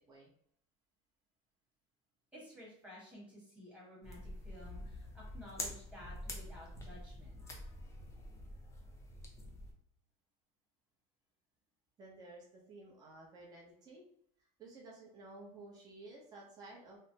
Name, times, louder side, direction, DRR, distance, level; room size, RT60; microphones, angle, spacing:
voice 1, 2.3-7.4, left 1 dB, 5° right, -7 dB, 1.3 m, -54 dB
sound 1, 4.0-9.7, left 1 dB, 20° left, 0.5 m, -46 dB
voice 2, 12.0-14.0 14.4-17.0, right 2 dB, 25° right, -3 dB, 0.7 m, -54 dB
3.2 x 2.0 x 2.8 m, 0.68 s
cardioid pair, 160°, 16 cm